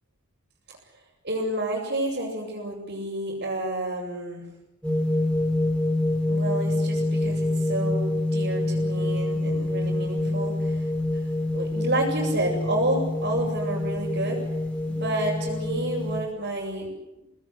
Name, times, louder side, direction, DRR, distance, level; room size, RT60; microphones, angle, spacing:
voice 1, 1.2-4.4 6.3-10.8 11.5-14.4 14.9-16.9, right 1 dB, 50° right, -5 dB, 6.9 m, -30 dB
sound 1, 4.8-16.2, left 1 dB, 5° left, 4.9 m, -26 dB
25.0 x 19.5 x 9.9 m, 0.93 s
head